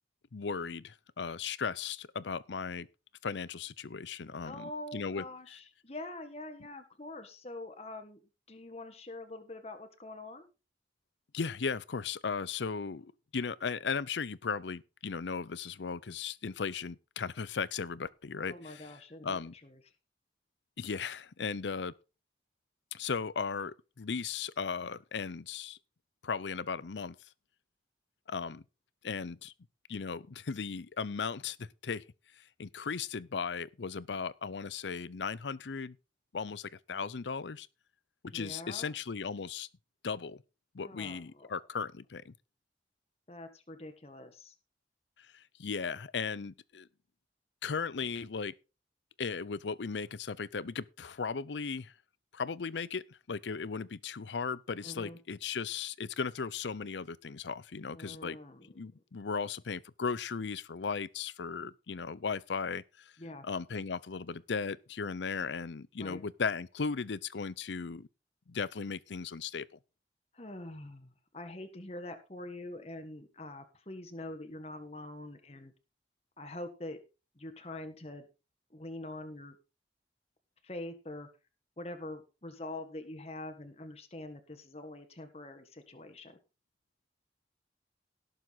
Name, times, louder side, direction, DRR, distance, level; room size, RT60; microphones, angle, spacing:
voice 1, 0.3-2.9 3.2-5.2 11.3-18.9 19.2-19.5 20.8-21.9 22.9-25.8 26.2-27.2 28.3-28.6 29.0-29.5 29.9-32.0 32.6-36.0 36.3-37.7 38.3-39.7 40.0-40.4 40.7-42.3 45.3-46.9 47.6-48.5 49.2-51.9 52.3-53.0 53.3-58.4 58.8-63.1 63.4-68.1 68.5-69.7, left 5 dB, 85° left, 0.6 m, -36 dB
voice 2, 4.4-8.2 8.5-10.5 18.4-19.8 38.3-38.9 40.8-41.5 43.3-44.5 54.8-55.2 57.8-59.0 63.2-63.4 66.0-66.2 70.3-75.7 76.4-77.0 77.3-78.3 78.7-79.6 80.6-81.3 81.8-86.4, left 1 dB, 35° left, 1.4 m, -45 dB
17.5 x 6.9 x 4.0 m
head